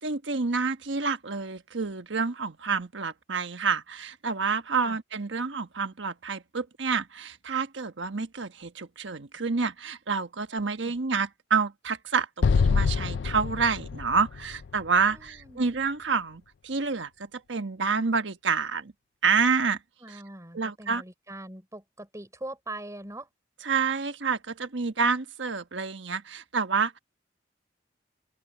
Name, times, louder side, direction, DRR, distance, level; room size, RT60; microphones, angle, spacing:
voice 1, 0.0-18.9 19.2-19.8 20.1-20.2 20.5-21.0 23.6-27.0, right 5 dB, 80° right, 1.3 m, -28 dB
Explosion, 12.4-15.7, left 5 dB, 75° left, 0.4 m, -26 dB
voice 2, 15.1-15.7 20.0-23.3, right 1 dB, 15° right, 5.1 m, -42 dB
head